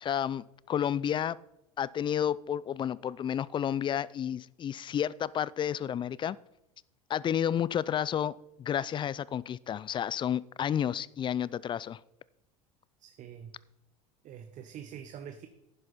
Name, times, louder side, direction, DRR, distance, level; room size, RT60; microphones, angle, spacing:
voice 1, 0.0-1.4 1.8-6.4 7.1-12.0, left 9 dB, 25° left, 21 dB, 0.4 m, -31 dB
voice 2, 13.0-13.5 14.2-15.5, right 8 dB, 40° right, 8 dB, 1.0 m, -45 dB
11.0 x 10.5 x 4.2 m, 0.86 s
hypercardioid pair, 90°, 19 cm